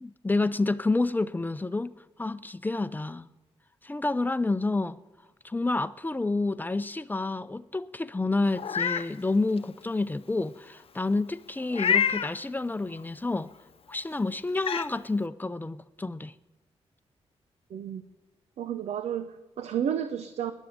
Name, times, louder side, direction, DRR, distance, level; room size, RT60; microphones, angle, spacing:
voice 1, 0.0-3.3 3.8-5.0 5.4-13.5 13.9-16.3, left 2 dB, 15° left, 0.6 m, -29 dB
Meow, 8.5-9.1 9.6-9.7 11.7-12.3 13.9-14.0 14.6-14.9, left 8 dB, 60° left, 0.8 m, -26 dB
voice 2, 17.7-18.0 18.6-20.5, right 9 dB, 80° right, 0.7 m, -31 dB
20.5 x 7.3 x 8.0 m
cardioid pair, 65°, 11 cm